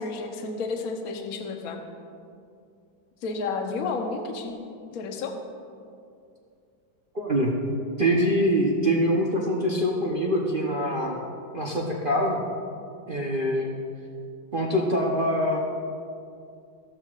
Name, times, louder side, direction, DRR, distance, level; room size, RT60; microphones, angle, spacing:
voice 1, 0.0-1.8 3.2-4.5 4.9-5.4, left 4 dB, 55° left, 3 dB, 1.2 m, -31 dB
voice 2, 7.1-7.5 8.0-11.2 11.5-12.4 13.1-13.7 14.5-15.6, equal, 55° right, -2 dB, 0.6 m, -24 dB
14.5 x 12.5 x 2.4 m, 2.4 s
omnidirectional pair, 2.2 m